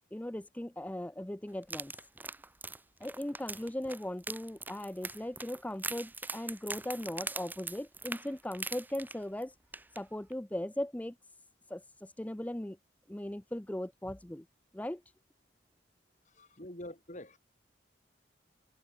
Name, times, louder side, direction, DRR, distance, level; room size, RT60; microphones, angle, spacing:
voice 1, 0.1-2.1 3.0-9.6 9.9-11.3 11.7-12.8 13.1-14.5 14.7-15.0, left 1 dB, 5° left, 0.4 m, -38 dB
sound 1, 1.6-9.4 9.7-10.0 10.3-10.4, right 3 dB, 10° right, 1.3 m, -42 dB
voice 2, 16.2-17.4, left 1 dB, 35° left, 3.3 m, -46 dB
head